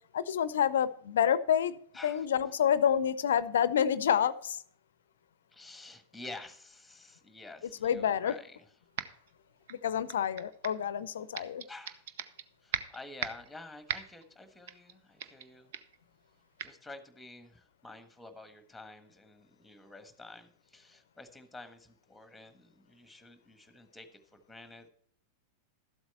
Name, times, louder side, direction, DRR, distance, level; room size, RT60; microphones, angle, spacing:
voice 1, 0.1-1.8 2.0-4.6 7.8-8.4 9.7-11.6, left 9 dB, 65° left, 18 dB, 0.6 m, -28 dB
voice 2, 1.9-2.2 5.5-8.6 11.7-12.0 12.6-15.7 16.6-24.9, left 2 dB, 5° left, 10 dB, 1.4 m, -49 dB
sound 1, 9.0-9.3 9.7-10.9 11.3-12.4 12.7-13.5 13.9-14.2 14.7-14.9 15.2-15.5 15.7-16.0 16.6-16.7, right 9 dB, 55° right, 0.8 m, -38 dB
13.0 x 8.0 x 4.4 m, 0.63 s
figure-of-eight pair, 90°, 0 cm